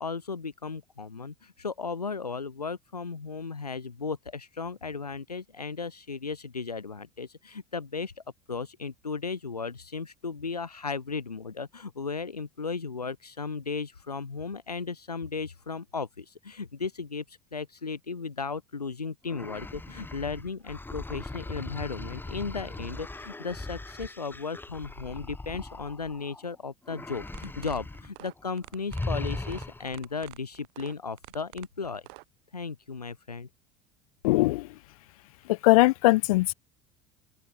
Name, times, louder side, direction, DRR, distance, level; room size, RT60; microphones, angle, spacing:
voice 1, 0.0-8.2 8.5-32.1 32.5-33.5, left 4 dB, 90° left, 3.2 m, -35 dB
sound 1, 19.3-26.4 26.9-28.1 28.4-28.5 28.9-30.0, left 2 dB, 10° left, 2.2 m, -39 dB
sound 2, 27.3-32.2, right 40 dB or more, 60° right, 4.2 m, -48 dB
voice 2, 34.2-34.7 35.6-36.5, left 20 dB, 65° left, 0.4 m, -20 dB
open air
figure-of-eight pair, 70°, 19 cm